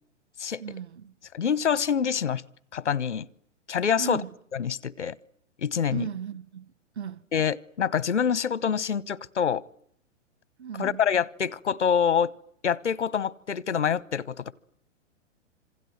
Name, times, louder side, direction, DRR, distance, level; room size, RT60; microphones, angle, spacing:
voice 1, 0.6-1.1 4.0-4.3 5.9-7.2 10.6-11.0, right 8 dB, 65° right, 1.4 m, -36 dB
voice 2, 1.3-2.4 2.7-3.3 3.7-4.2 4.5-5.1 5.6-6.0 7.3-9.6 10.8-12.3 12.6-14.5, left 7 dB, 70° left, 1.1 m, -26 dB
28.5 x 26.5 x 7.8 m
figure-of-eight pair, 110°, 36 cm